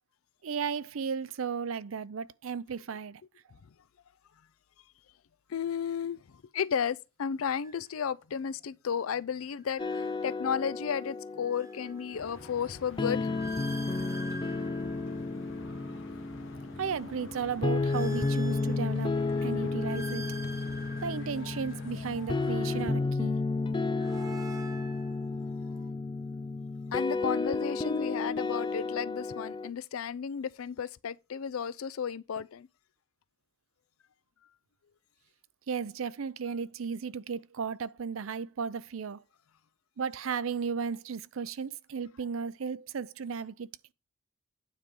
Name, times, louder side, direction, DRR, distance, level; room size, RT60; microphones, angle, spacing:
voice 1, 0.4-3.2 16.8-20.2 21.0-23.4 35.7-39.2 40.0-43.7, right 6 dB, 75° right, 0.5 m, -35 dB
voice 2, 5.5-6.2 6.5-13.3 24.4-24.5 26.9-32.7, left 7 dB, 85° left, 0.5 m, -33 dB
sound 1, 7.6-7.9 9.6-10.8 11.2-16.0 16.5-19.2 19.6-22.6 23.6-25.9, right 2 dB, 15° right, 1.2 m, -48 dB
sound 2, 9.8-29.7, left 3 dB, 25° left, 0.4 m, -32 dB
sound 3, 12.1-22.8, left 3 dB, 65° left, 1.3 m, -48 dB
9.5 x 4.7 x 5.4 m
head